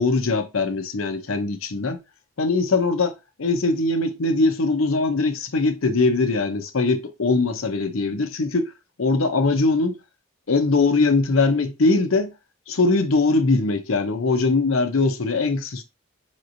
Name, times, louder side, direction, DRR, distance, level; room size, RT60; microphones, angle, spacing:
voice 1, 0.0-2.0 2.4-8.7 9.0-10.0 10.5-12.3 12.7-15.8, left 3 dB, 90° left, 0.7 m, -21 dB
5.2 x 3.1 x 2.6 m
head